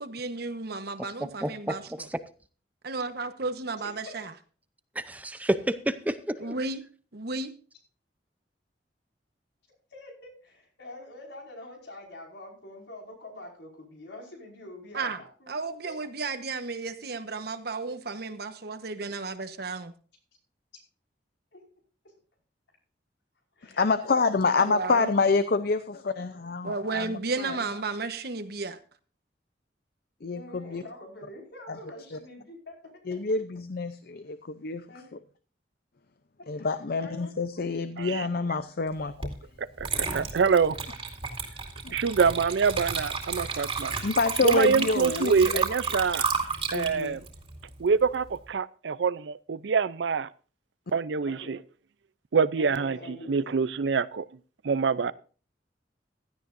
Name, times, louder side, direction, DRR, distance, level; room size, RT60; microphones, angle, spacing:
voice 1, 0.0-2.1 2.8-4.3 6.4-6.8 7.1-7.5 14.9-15.2 15.5-19.9 24.5-25.1 26.6-28.8, right 3 dB, 60° right, 10 dB, 1.1 m, -33 dB
voice 2, 1.4-2.2 5.0-6.3, right 1 dB, 10° right, 12 dB, 0.5 m, -30 dB
voice 3, 9.9-16.0 21.5-21.6 23.6-23.8 26.1-26.3 27.5-27.7 30.3-32.9 34.9-35.0 36.4-36.7 37.0-37.3 40.5-40.8 44.5-44.9 51.2-51.6 52.6-53.6 54.9-55.1, left 1 dB, 80° left, -1 dB, 5.1 m, -46 dB
voice 4, 23.8-27.6 30.2-30.8 31.7-31.8 32.1-32.2 33.1-34.8 36.5-39.3 41.8-42.0 44.0-45.6 46.7-47.2, left 4 dB, 55° left, 11 dB, 0.6 m, -27 dB
Water / Liquid, 39.2-39.4 39.8-48.3, right 5 dB, 30° right, 2.4 m, -32 dB
voice 5, 39.8-40.7 41.9-43.9 44.4-46.3 46.7-47.2 47.8-50.3 50.9-51.6 52.3-54.2 54.6-55.1, right 5 dB, 75° right, 18 dB, 0.5 m, -25 dB
16.0 x 12.0 x 2.6 m, 0.38 s
head